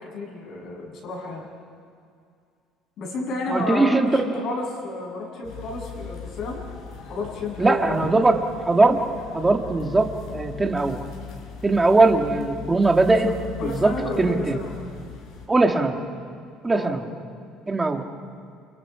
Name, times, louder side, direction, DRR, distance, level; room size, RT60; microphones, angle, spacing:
voice 1, 0.0-1.5 3.0-6.6 7.1-8.2 13.2-13.3 13.6-14.8 16.7-17.0, left 2 dB, 50° left, -1 dB, 7.4 m, -31 dB
voice 2, 3.5-4.3 7.6-9.0 9.3-11.0 11.6-13.3 13.6-13.9 14.2-14.6 15.5-16.0 16.6-17.0 17.7-18.1, right 2 dB, 10° right, 4 dB, 1.9 m, -20 dB
sound 1, 5.4-15.5, left 7 dB, 70° left, 4.8 m, -39 dB
30.0 x 29.0 x 5.0 m, 2.3 s
cardioid pair, 145°, 0 cm